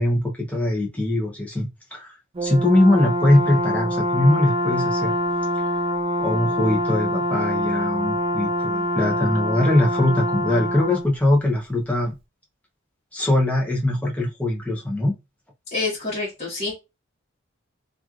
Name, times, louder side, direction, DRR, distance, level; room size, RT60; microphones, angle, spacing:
voice 1, 0.0-2.1 2.4-5.1 6.2-12.1 13.1-15.1, left 1 dB, 5° left, 0.7 m, -21 dB
Brass instrument, 2.4-11.1, equal, 30° right, 0.3 m, -25 dB
voice 2, 15.7-16.7, left 3 dB, 35° left, 1.2 m, -27 dB
3.0 x 2.5 x 2.4 m
head